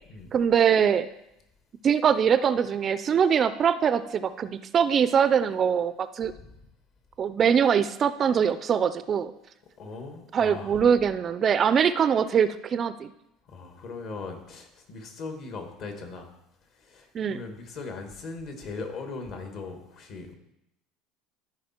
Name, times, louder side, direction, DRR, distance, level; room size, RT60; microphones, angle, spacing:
voice 1, 0.3-1.1 1.8-6.3 7.2-9.3 10.3-13.1 17.1-17.4, right 7 dB, 35° right, 13 dB, 0.4 m, -23 dB
voice 2, 9.8-10.8 13.5-16.3 16.7-20.3, left 3 dB, 55° left, 4 dB, 1.8 m, -39 dB
13.5 x 4.9 x 4.4 m, 0.84 s
supercardioid pair, 125°, 0 cm